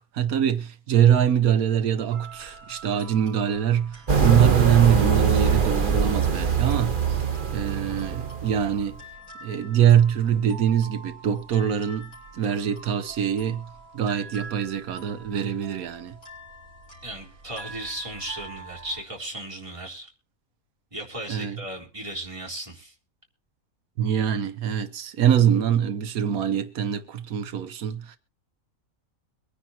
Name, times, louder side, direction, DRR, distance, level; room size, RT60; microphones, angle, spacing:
voice 1, 0.0-7.2 7.5-9.0 9.4-13.7 13.9-16.2 21.3-21.6 24.0-28.2, right 9 dB, 85° right, 1.3 m, -23 dB
sound 1, 2.1-19.0, right 3 dB, 85° left, 5.3 m, -45 dB
sound 2, 4.1-8.8, right 6 dB, 40° right, 1.4 m, -23 dB
voice 2, 17.0-20.1 20.9-22.9, right 1 dB, 20° right, 3.7 m, -36 dB
23.5 x 9.9 x 2.8 m
omnidirectional pair, 1.5 m